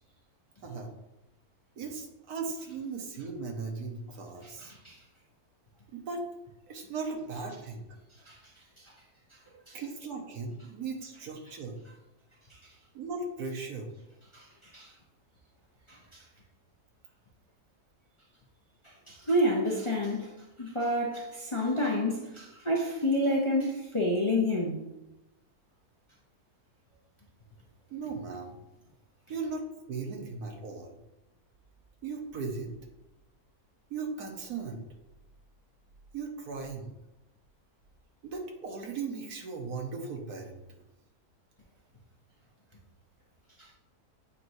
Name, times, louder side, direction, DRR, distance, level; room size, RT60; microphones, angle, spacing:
voice 1, 1.8-4.7 5.9-6.2 6.7-7.9 9.7-11.8 12.9-13.9 27.9-28.6 29.3-30.9 32.0-32.7 33.9-34.8 36.1-36.9 38.2-40.6, right 4 dB, 80° right, 2 dB, 1.6 m, -37 dB
voice 2, 19.1-20.3 20.6-24.8, left 1 dB, 25° left, -2 dB, 0.7 m, -28 dB
8.6 x 4.6 x 2.7 m, 0.95 s
omnidirectional pair, 1.6 m